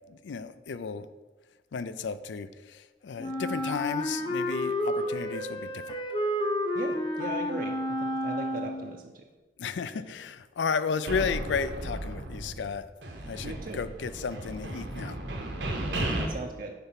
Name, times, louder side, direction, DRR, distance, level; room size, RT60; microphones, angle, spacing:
voice 1, 0.1-1.1 1.7-6.0 9.6-12.8 13.2-15.2, left 5 dB, 85° left, 13 dB, 0.4 m, -33 dB
Wind instrument woodwind instrument, 3.2-9.0, left 1 dB, 25° left, 0.8 m, -30 dB
voice 2, 6.7-7.7 8.0-9.2 9.9-10.0 13.4-13.8 16.0-16.7, right 2 dB, 50° right, 2 dB, 0.5 m, -38 dB
sound 1, 11.1-12.7 13.0-16.3, right 1 dB, 85° right, 1.2 m, -34 dB
6.9 x 4.5 x 5.7 m, 1.2 s
head